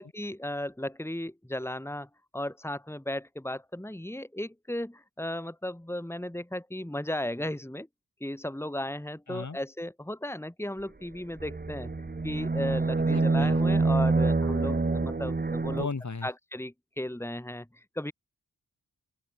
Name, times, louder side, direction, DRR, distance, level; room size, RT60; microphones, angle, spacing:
voice 1, 0.0-7.9 8.2-11.9 12.2-15.9 16.2-18.1, left 1 dB, 5° left, 3.3 m, -35 dB
sound 1, 11.4-15.8, right 3 dB, 25° right, 1.3 m, -26 dB
voice 2, 13.0-13.6 15.7-16.3, left 4 dB, 50° left, 6.4 m, -36 dB
open air
wide cardioid pair, 85°, 36 cm